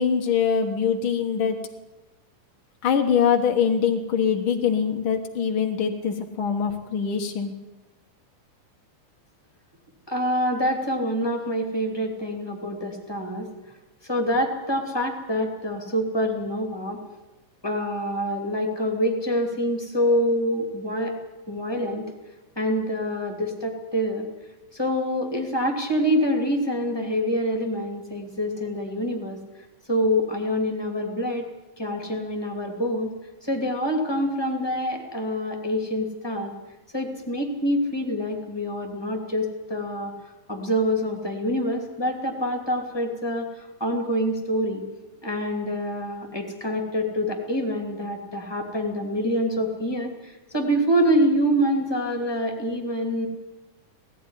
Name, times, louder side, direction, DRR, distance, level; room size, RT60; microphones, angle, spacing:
voice 1, 0.0-1.6 2.8-7.5, left 7 dB, 80° left, 3 dB, 1.1 m, -23 dB
voice 2, 10.1-13.5 14.0-17.0 17.6-21.2 21.5-22.1 22.6-24.3 24.7-29.4 29.9-31.5 31.8-33.1 33.4-36.5 36.9-40.1 40.5-44.8 45.2-53.3, equal, 10° left, 2 dB, 2.0 m, -26 dB
18.5 x 14.5 x 9.9 m, 1.1 s
omnidirectional pair, 4.5 m